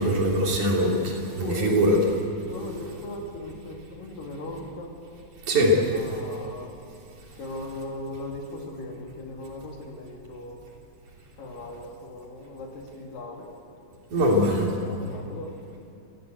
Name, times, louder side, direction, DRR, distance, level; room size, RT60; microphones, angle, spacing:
voice 1, 0.0-2.0 5.5-5.7 14.1-14.7, equal, 60° right, -2 dB, 4.7 m, -22 dB
voice 2, 1.4-1.7 2.5-4.9 5.7-6.7 7.4-10.6 11.4-13.5 14.1-15.5, left 2 dB, 85° left, 1 dB, 4.3 m, -38 dB
27.5 x 16.0 x 8.0 m, 2.6 s
omnidirectional pair, 3.8 m